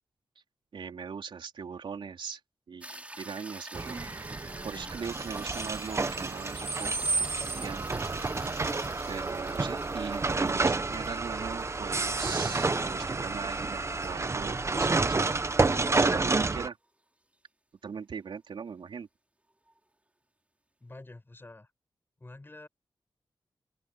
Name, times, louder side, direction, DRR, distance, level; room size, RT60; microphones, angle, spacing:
voice 1, 0.7-2.4 2.7-4.0 4.6-7.9 9.1-15.3 16.0-16.8 17.8-19.1, right 6 dB, 85° right, 3.6 m, -40 dB
sound 1, 2.8-15.2 19.7-19.8, right 1 dB, 15° right, 4.4 m, -48 dB
sound 2, 3.7-16.7, right 3 dB, 35° right, 1.1 m, -29 dB
voice 2, 20.8-21.7 22.2-22.7, left 2 dB, 25° left, 6.3 m, -48 dB
open air
wide cardioid pair, 80°, 8 cm